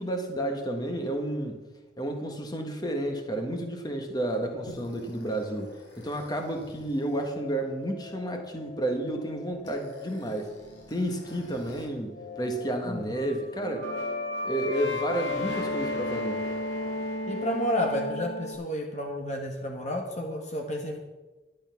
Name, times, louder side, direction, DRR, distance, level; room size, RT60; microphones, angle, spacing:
voice 1, 0.0-1.6 2.0-10.5 10.9-13.9 14.4-16.4, right 1 dB, 20° left, 4 dB, 1.6 m, -31 dB
sound 1, 4.7-11.8 12.1-18.5, left 2 dB, 80° left, 4.2 m, -36 dB
voice 2, 12.9-13.3 17.3-21.0, left 1 dB, 40° left, 1 dB, 1.4 m, -31 dB
12.0 x 9.1 x 5.9 m, 1.2 s
head